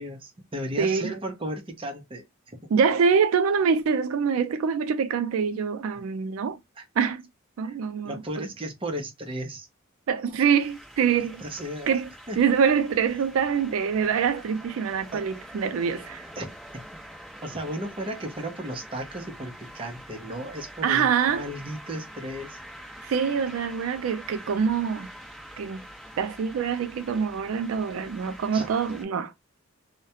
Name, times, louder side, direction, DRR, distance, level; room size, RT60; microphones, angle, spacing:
voice 1, 0.0-2.6 6.8-6.9 7.6-7.8 8.0-9.7 11.4-12.0 12.3-12.4 15.1-15.3 16.3-16.8 17.4-22.6 28.5-28.7, right 1 dB, 25° right, 0.6 m, -35 dB
voice 2, 0.8-1.1 2.7-6.6 7.0-7.2 7.6-8.2 10.1-11.4 11.9-12.1 12.4-16.2 20.8-21.5 23.0-25.1 25.6-25.8 26.2-29.3, right 6 dB, 80° right, 0.3 m, -25 dB
sound 1, 10.6-29.0, equal, ahead, 0.9 m, -45 dB
2.3 x 2.1 x 2.7 m
head